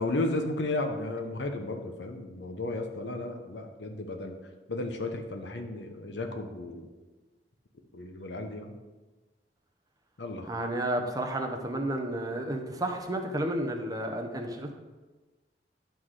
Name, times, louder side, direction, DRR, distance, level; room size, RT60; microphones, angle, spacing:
voice 1, 0.0-4.3 4.7-6.9 7.9-8.7 10.2-10.5, left 2 dB, 85° left, 5 dB, 1.0 m, -34 dB
voice 2, 10.5-14.8, right 1 dB, 20° right, 3 dB, 0.9 m, -31 dB
10.5 x 3.9 x 4.8 m, 1.2 s
head